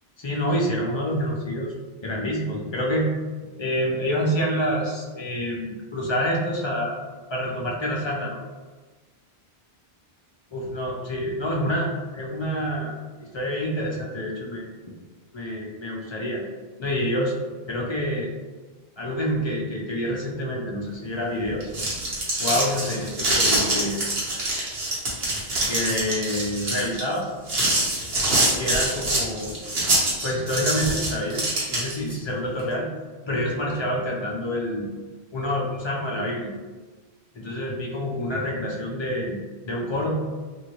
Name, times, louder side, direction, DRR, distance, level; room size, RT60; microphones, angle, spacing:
voice 1, 0.2-1.8 2.0-3.1 3.6-7.0 7.3-8.4 10.5-12.9 13.3-14.6 15.3-16.4 16.8-17.3 17.7-18.3 19.0-21.7 22.4-24.0 25.6-27.2 28.6-29.5 30.2-32.9 33.3-34.9 35.3-36.5 37.3-39.4 39.6-40.2, equal, 40° left, -3 dB, 0.4 m, -27 dB
sound 1, 21.5-32.1, right 1 dB, 70° right, 1.2 m, -25 dB
2.8 x 2.7 x 2.9 m, 1.4 s
omnidirectional pair, 1.1 m